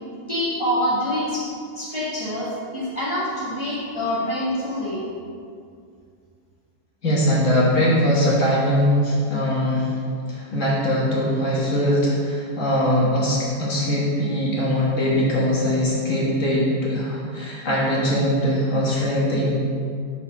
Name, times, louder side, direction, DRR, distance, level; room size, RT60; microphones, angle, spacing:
voice 1, 0.3-1.5 1.8-5.1, left 1 dB, 20° right, -9 dB, 1.0 m, -26 dB
voice 2, 7.0-9.9 10.3-19.5, equal, 50° left, -6 dB, 1.6 m, -21 dB
5.8 x 4.1 x 5.1 m, 2.3 s
omnidirectional pair, 1.8 m